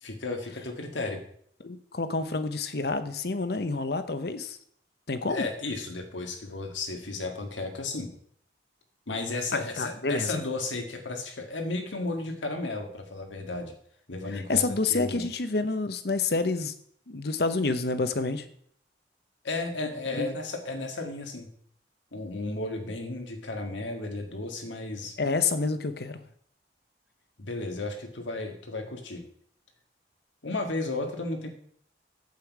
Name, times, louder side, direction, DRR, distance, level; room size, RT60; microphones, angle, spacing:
voice 1, 0.0-1.2 5.3-8.1 9.1-13.7 14.1-14.6 14.9-15.3 19.4-21.5 22.1-25.1 27.4-29.2 30.4-31.5, left 2 dB, 90° left, 4 dB, 1.9 m, -34 dB
voice 2, 1.6-4.6 5.1-5.4 9.5-10.4 14.3-16.7 17.1-18.5 20.1-20.2 25.2-26.2, left 3 dB, 55° left, 11 dB, 0.8 m, -28 dB
8.4 x 8.4 x 4.8 m, 0.63 s
head